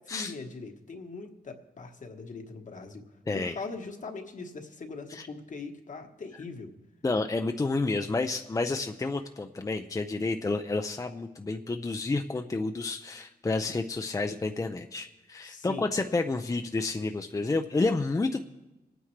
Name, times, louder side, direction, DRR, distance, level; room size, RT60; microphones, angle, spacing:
voice 1, 0.0-3.1 3.3-6.7 15.4-15.9, left 4 dB, 55° left, 4 dB, 1.3 m, -41 dB
voice 2, 7.0-18.4, left 3 dB, 20° left, 6 dB, 0.5 m, -30 dB
24.0 x 9.3 x 3.2 m, 1.1 s
cardioid pair, 80°, 16 cm